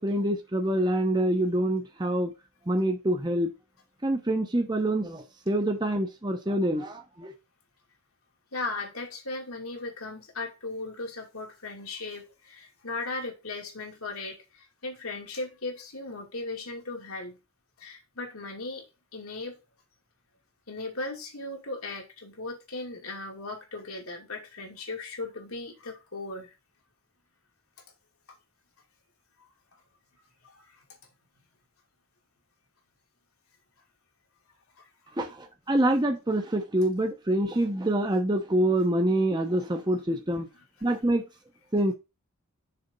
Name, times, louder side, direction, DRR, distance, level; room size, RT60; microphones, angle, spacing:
voice 1, 0.0-2.3 2.7-3.5 4.0-7.3 35.2-40.5 40.8-41.3 41.7-41.9, right 1 dB, 20° right, 0.8 m, -26 dB
voice 2, 8.5-17.4 17.8-18.8 19.1-19.6 20.7-26.5 29.4-29.5 30.4-30.8 34.8-34.9 39.9-40.0 40.8-40.9, left 2 dB, 80° left, 2.6 m, -37 dB
6.8 x 4.2 x 5.3 m
head